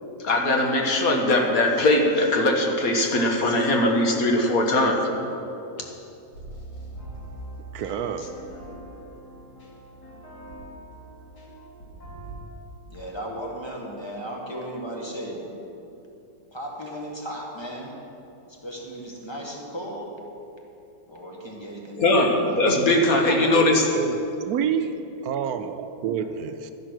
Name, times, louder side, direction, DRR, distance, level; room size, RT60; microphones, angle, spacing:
voice 1, 0.2-5.0 22.0-23.9, left 1 dB, 65° left, 2 dB, 1.8 m, -20 dB
sound 1, 6.3-12.3, right 1 dB, 85° left, 3.5 m, -42 dB
voice 2, 7.7-8.4 23.3-23.7 23.9-24.2 24.5-24.9 25.2-26.7, right 8 dB, 75° right, 9 dB, 1.1 m, -28 dB
voice 3, 12.9-15.5 16.5-18.0 18.5-20.1 21.1-22.7, equal, 15° left, -1 dB, 1.7 m, -36 dB
12.0 x 10.5 x 6.4 m, 2.9 s
omnidirectional pair, 1.7 m